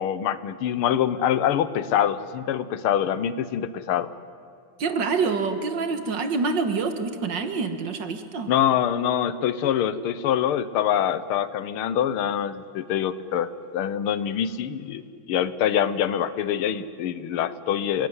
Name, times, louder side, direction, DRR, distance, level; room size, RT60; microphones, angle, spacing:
voice 1, 0.0-4.1 8.5-15.0 15.3-18.1, left 9 dB, 90° left, 14 dB, 1.8 m, -25 dB
voice 2, 4.8-8.5, right 4 dB, 60° right, 8 dB, 2.1 m, -26 dB
29.0 x 18.5 x 9.6 m, 2.4 s
omnidirectional pair, 2.3 m